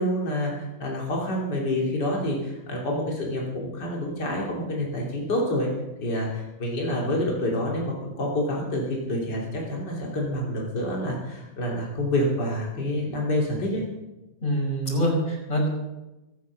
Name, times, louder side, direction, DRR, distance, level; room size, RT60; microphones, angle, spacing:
voice 1, 0.0-5.7 6.0-13.8, left 1 dB, 65° left, -2 dB, 3.6 m, -27 dB
voice 2, 14.4-15.7, equal, 45° left, -2 dB, 5.5 m, -24 dB
24.5 x 8.4 x 6.4 m, 1.0 s
omnidirectional pair, 2.0 m